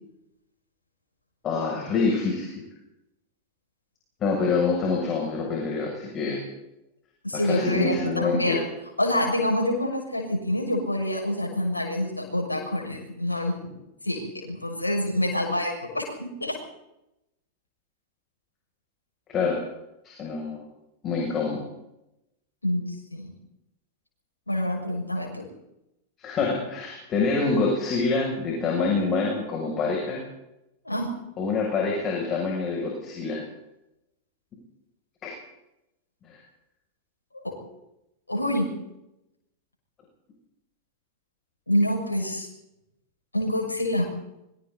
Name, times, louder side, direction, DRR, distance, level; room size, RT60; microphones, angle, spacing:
voice 1, 1.4-2.6 4.2-6.4 7.3-8.6 19.3-19.6 20.0-20.6 21.0-21.6 26.2-30.2 31.4-33.4 35.2-35.3 36.2-36.4, left 4 dB, 30° left, -1 dB, 7.5 m, -26 dB
voice 2, 7.2-8.6 9.0-16.6 22.6-23.3 24.5-25.4 30.8-31.1 37.3-37.6 38.3-38.7 41.7-42.5 43.3-44.1, left 1 dB, 85° left, 0 dB, 6.7 m, -27 dB
26.5 x 24.0 x 4.3 m, 0.87 s
figure-of-eight pair, 90°, 0 cm